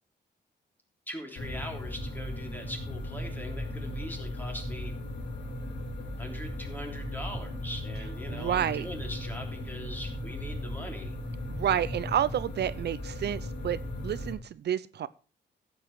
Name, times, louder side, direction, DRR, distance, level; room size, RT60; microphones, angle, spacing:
voice 1, 1.1-5.0 6.2-11.2, equal, 10° left, 2 dB, 3.3 m, -41 dB
sound 1, 1.4-14.3, left 1 dB, 85° left, 3.8 m, -37 dB
voice 2, 8.3-8.9 11.5-15.1, right 10 dB, 70° right, 15 dB, 0.6 m, -30 dB
15.0 x 8.0 x 4.7 m, 0.37 s
wide cardioid pair, 140°, 18 cm